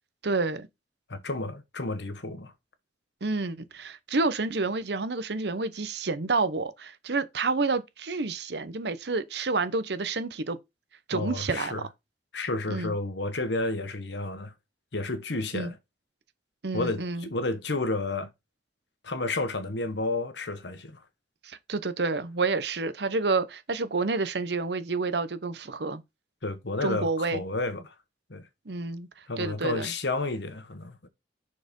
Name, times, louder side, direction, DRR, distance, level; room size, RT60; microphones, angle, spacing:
voice 1, 0.2-0.7 3.2-10.6 11.1-11.8 12.7-12.9 15.5-15.7 16.6-17.3 21.4-26.0 26.8-27.4 28.7-29.1 29.4-29.9, right 3 dB, 65° right, 0.8 m, -29 dB
voice 2, 1.1-2.5 11.1-11.8 12.3-14.5 14.9-15.7 16.7-18.3 19.0-21.0 26.4-27.9 28.3-28.5 29.3-31.1, left 2 dB, 70° left, 1.2 m, -31 dB
6.5 x 4.3 x 5.3 m
head